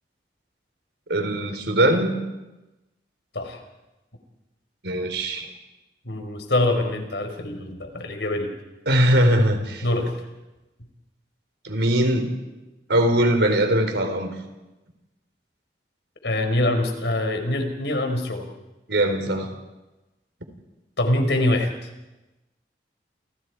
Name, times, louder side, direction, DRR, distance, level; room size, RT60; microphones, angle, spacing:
voice 1, 1.1-2.2 4.8-5.5 8.9-9.8 11.6-12.3 12.9-14.3 18.9-19.5, right 1 dB, 80° right, 6 dB, 4.3 m, -21 dB
voice 2, 6.0-8.5 9.8-10.1 16.2-18.5 21.0-21.7, left 1 dB, 85° left, 5 dB, 4.7 m, -24 dB
29.5 x 29.5 x 4.8 m, 1.0 s
head